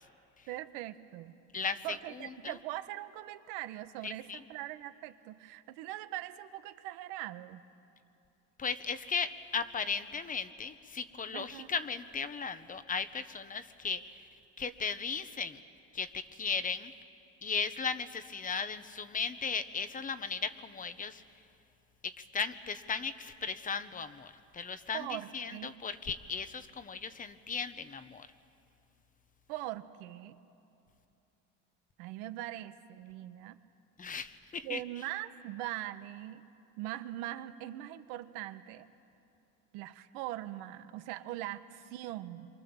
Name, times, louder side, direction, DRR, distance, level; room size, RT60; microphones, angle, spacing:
voice 1, 0.5-1.4 1.8-7.6 11.3-11.7 24.9-25.7 29.5-30.4 32.0-33.6 34.6-36.4 36.8-38.9 39.7-42.5, right 15 dB, 80° right, 11 dB, 1.2 m, -41 dB
voice 2, 1.5-2.5 4.0-4.4 8.6-14.3 14.6-15.6 15.9-16.9 17.4-21.2 22.0-28.3 34.0-34.8, left 5 dB, 25° left, 12 dB, 1.0 m, -36 dB
27.0 x 24.0 x 7.1 m, 2.7 s
supercardioid pair, 115°, 33 cm